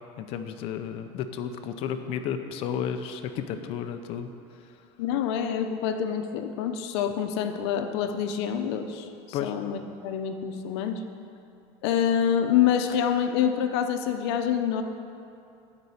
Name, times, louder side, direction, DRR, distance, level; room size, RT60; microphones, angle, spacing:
voice 1, 0.2-4.3 9.3-9.5, left 8 dB, 40° left, 8 dB, 0.7 m, -32 dB
voice 2, 5.0-9.8 10.0-11.0 11.8-14.8, left 8 dB, 70° left, 7 dB, 0.9 m, -26 dB
12.0 x 5.4 x 8.5 m, 2.6 s
supercardioid pair, 165°, 14 cm